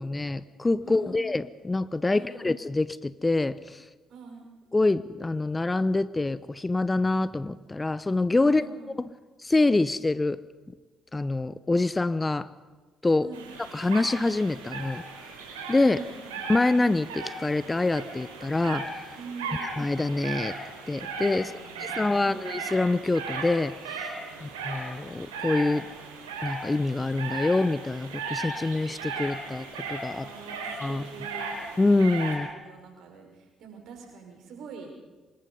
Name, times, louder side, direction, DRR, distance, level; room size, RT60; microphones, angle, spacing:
voice 1, 0.0-3.8 4.7-8.6 9.4-10.4 11.1-12.5 13.0-13.3 13.6-15.0 15.7-16.0 16.5-18.9 19.6-20.5 20.9-21.5 21.8-23.7 24.4-25.9 26.4-30.3 30.8-31.0 31.8-32.5, left 2 dB, 20° left, 16 dB, 0.8 m, -25 dB
voice 2, 0.8-1.3 2.1-2.6 4.1-4.5 8.5-9.0 13.2-13.5 16.0-16.5 19.2-19.6 21.4-22.5 24.3-24.4 30.2-31.5 32.5-33.3 33.6-34.9, right 5 dB, 65° right, 2 dB, 5.4 m, -44 dB
sound 1, 13.3-32.4, right 4 dB, 85° right, 4.1 m, -37 dB
25.5 x 21.0 x 5.5 m, 1.3 s
hypercardioid pair, 50°, 0 cm